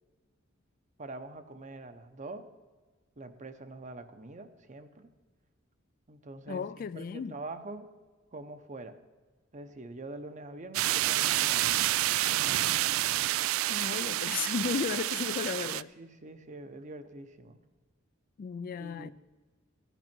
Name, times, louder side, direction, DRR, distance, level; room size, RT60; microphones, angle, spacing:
voice 1, 1.0-2.5 3.2-5.1 6.1-7.9 8.3-9.0 9.5-11.8 12.4-12.8 16.0-17.6 18.8-19.1, right 2 dB, 40° right, 0.8 m, -44 dB
voice 2, 6.5-7.4 13.7-15.9 18.4-19.1, left 6 dB, 45° left, 0.3 m, -34 dB
sound 1, 10.7-15.8, right 15 dB, 80° right, 0.3 m, -28 dB
14.5 x 9.1 x 6.0 m
head